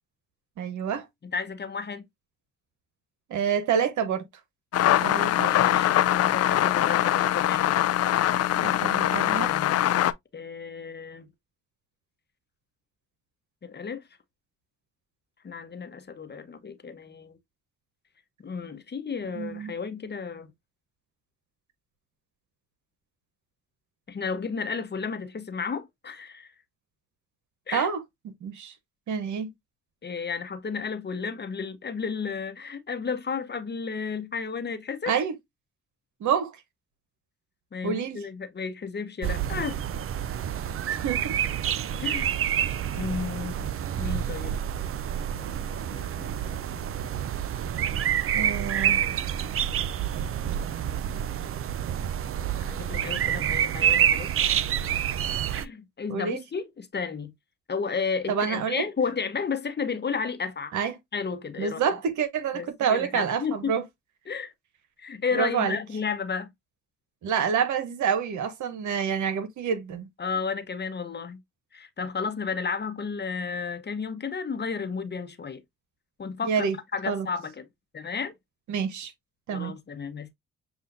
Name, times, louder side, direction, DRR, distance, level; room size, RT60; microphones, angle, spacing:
voice 1, 0.6-1.0 3.3-4.2 5.0-5.5 8.6-9.5 19.3-19.7 27.7-28.0 28.4-28.7 29.1-29.5 35.1-35.3 36.2-36.5 37.8-38.2 40.9-41.4 48.3-49.0 56.1-56.4 58.3-58.8 60.7-60.9 61.6-63.8 65.3-65.8 67.2-70.1 76.5-76.7 77.1-77.3 78.7-79.1 79.5-79.7, right 7 dB, 70° right, 1.0 m, -27 dB
voice 2, 1.2-2.1 5.3-7.7 8.5-9.8 10.3-11.3 13.6-14.0 15.4-17.4 18.4-20.5 24.1-26.5 27.7-27.9 30.0-35.2 37.7-39.8 42.0-42.3 42.9-44.6 45.3-46.9 48.3-49.2 52.6-54.3 55.4-57.3 57.7-60.7 61.1-62.0 62.5-63.7 64.3-64.5 65.0-66.5 70.2-71.4 71.7-75.6 76.2-77.7 77.9-78.3 79.5-80.3, left 5 dB, 35° left, 0.9 m, -33 dB
sound 1, 4.7-10.1, left 12 dB, 50° left, 0.5 m, -23 dB
sound 2, 39.2-55.6, right 9 dB, 45° right, 0.5 m, -28 dB
7.1 x 2.4 x 2.6 m
supercardioid pair, 50°, 31 cm